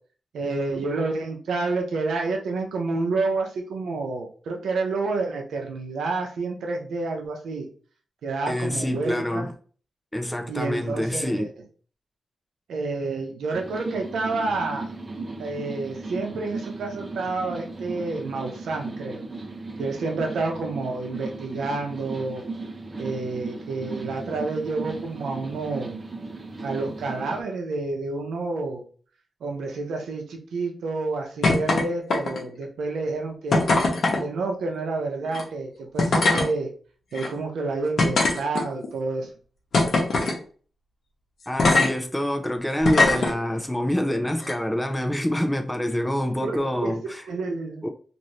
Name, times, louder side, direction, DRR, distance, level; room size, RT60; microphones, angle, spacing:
voice 1, 0.3-7.7 8.2-9.5 10.5-11.5 12.7-14.9 15.4-19.2 19.8-22.4 23.0-26.0 26.6-28.9 29.4-33.7 34.2-36.7 37.1-39.3 46.4-46.9 47.3-47.9, right 3 dB, 90° right, 0.6 m, -29 dB
voice 2, 8.5-9.5 10.1-11.5 41.5-47.2 47.8-47.9, equal, 10° left, 0.5 m, -26 dB
sound 1, 13.5-27.4, right 3 dB, 35° right, 0.6 m, -36 dB
sound 2, 31.4-31.8 32.1-32.5 33.5-34.2 35.3-35.4 36.0-36.5 37.1-37.3 38.0-38.9 39.7-40.4 41.6-41.9 42.8-43.3 44.4-44.5, left 3 dB, 70° left, 0.9 m, -20 dB
2.6 x 2.6 x 3.1 m
cardioid pair, 65°, 0 cm